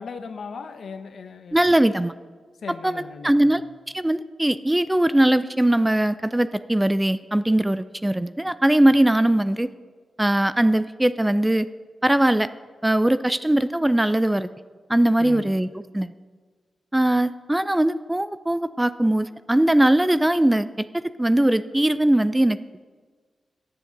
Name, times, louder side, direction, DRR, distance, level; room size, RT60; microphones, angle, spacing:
voice 1, 0.0-1.8 2.6-3.6 15.2-15.5, left 5 dB, 65° left, 9 dB, 0.9 m, -37 dB
voice 2, 1.5-2.1 2.8-2.9 3.2-3.6 3.9-9.7 10.2-11.7 12.0-12.5 12.8-14.5 14.9-15.7 15.9-16.1 16.9-22.6, right 1 dB, 10° right, 14 dB, 0.4 m, -20 dB
10.5 x 7.3 x 7.8 m, 1.5 s
cardioid pair, 85°, 0 cm